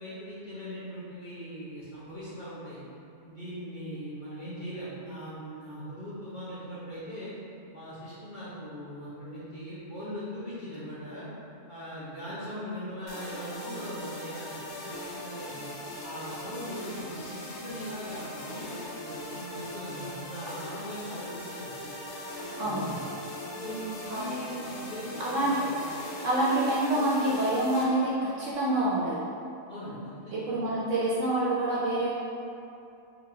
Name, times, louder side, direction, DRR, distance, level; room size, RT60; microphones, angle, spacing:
voice 1, 0.0-2.8 3.2-7.3 7.7-11.3 11.7-15.6 16.0-21.9 22.6-23.0 23.6-25.7 29.7-30.5, equal, 40° left, -12 dB, 0.8 m, -40 dB
sound 1, 13.1-27.8, left 1 dB, 80° left, 1.2 m, -40 dB
voice 2, 22.6-22.9 24.1-24.3 25.2-25.5 26.2-29.2 30.3-32.1, right 1 dB, 65° right, -7 dB, 0.8 m, -27 dB
4.3 x 2.7 x 2.7 m, 2.7 s
omnidirectional pair, 1.6 m